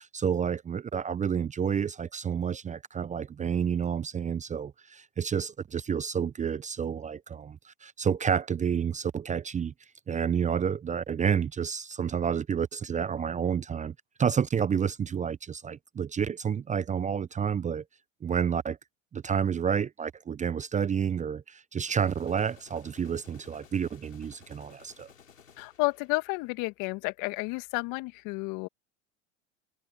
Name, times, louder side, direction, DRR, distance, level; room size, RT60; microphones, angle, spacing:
voice 1, 0.0-9.7 10.1-17.8 18.2-18.8 19.1-25.1, right 7 dB, 20° right, 0.8 m, -30 dB
sound 1, 21.8-26.7, left 7 dB, 85° left, 5.8 m, -57 dB
voice 2, 25.6-28.7, left 27 dB, 55° left, 1.9 m, -31 dB
hypercardioid pair, 85°, 38 cm